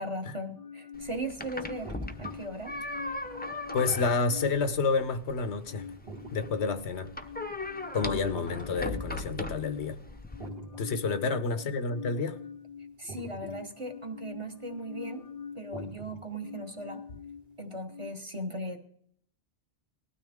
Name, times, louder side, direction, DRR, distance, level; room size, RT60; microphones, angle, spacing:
voice 1, 0.0-2.8 11.1-11.2 11.6-11.7 13.0-15.2 15.5-17.0 17.6-18.8, right 1 dB, 30° right, 4 dB, 1.2 m, -38 dB
sound 1, 0.6-18.1, left 6 dB, 55° left, 0.9 m, -45 dB
sound 2, 0.9-10.5, left 2 dB, 10° left, 0.6 m, -39 dB
sound 3, 1.4-7.3 7.8-17.8, right 3 dB, 60° right, 2.3 m, -48 dB
voice 2, 3.7-5.9 6.3-7.1 7.9-10.0 10.8-12.4, left 4 dB, 80° left, 11 dB, 1.1 m, -29 dB
19.0 x 12.5 x 3.6 m, 0.64 s
omnidirectional pair, 1.1 m